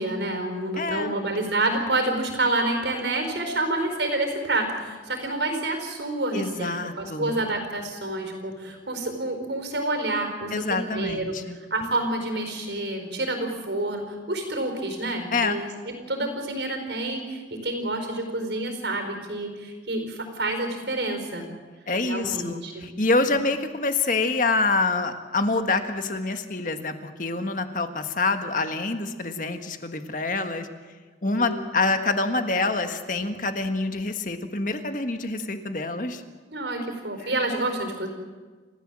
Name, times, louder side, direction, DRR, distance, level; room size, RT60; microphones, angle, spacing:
voice 1, 0.0-11.4 11.7-21.5 22.0-22.9 23.3-23.4 31.3-31.6 36.5-38.1, right 2 dB, 75° right, 5 dB, 4.7 m, -28 dB
voice 2, 0.8-1.2 6.3-7.4 10.5-11.6 15.3-15.6 21.9-30.7 31.2-36.2 37.2-37.3, left 3 dB, 45° left, 7 dB, 1.6 m, -26 dB
28.5 x 15.5 x 7.7 m, 1.4 s
head